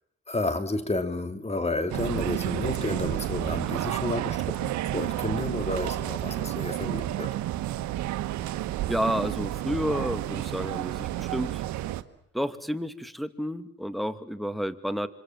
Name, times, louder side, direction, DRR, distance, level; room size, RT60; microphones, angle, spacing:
voice 1, 0.3-7.3, left 2 dB, 20° left, 2.9 m, -31 dB
sound 1, 1.9-12.0, right 14 dB, 75° right, 1.5 m, -31 dB
voice 2, 8.9-11.6 12.3-15.1, equal, ahead, 2.4 m, -30 dB
27.0 x 25.5 x 7.5 m
supercardioid pair, 70°, 29 cm